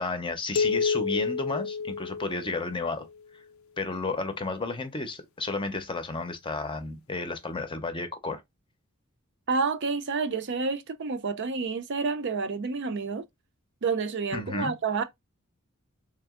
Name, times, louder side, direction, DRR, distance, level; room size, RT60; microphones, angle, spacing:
voice 1, 0.0-3.1 3.8-8.4 14.3-14.7, left 3 dB, 25° left, 0.6 m, -32 dB
sound 1, 0.6-3.0, left 5 dB, 70° left, 0.4 m, -29 dB
voice 2, 9.5-13.2 13.8-15.0, right 4 dB, 55° right, 0.5 m, -29 dB
3.4 x 2.9 x 3.5 m
head